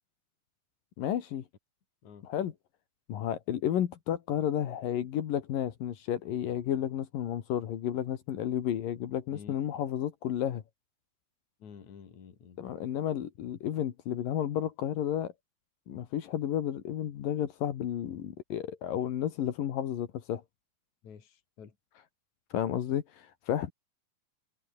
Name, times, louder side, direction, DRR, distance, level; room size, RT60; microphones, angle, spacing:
voice 1, 1.0-1.5 2.2-2.5 3.1-10.6 12.6-15.3 15.9-20.4 22.5-23.7, left 10 dB, 75° left, 3.4 m, -32 dB
voice 2, 11.6-12.6 21.0-21.8, left 7 dB, 55° left, 4.3 m, -50 dB
omnidirectional pair, 4.0 m